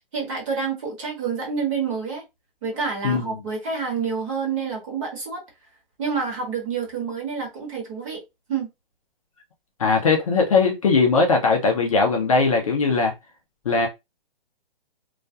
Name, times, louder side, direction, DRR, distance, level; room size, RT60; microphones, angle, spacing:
voice 1, 0.1-2.2 2.6-5.4 6.0-8.2 8.5-8.7, right 5 dB, 35° right, 1.1 m, -28 dB
voice 2, 9.8-13.1 13.7-13.9, left 4 dB, 35° left, 0.4 m, -19 dB
2.3 x 2.1 x 2.6 m
hypercardioid pair, 160°, 29 cm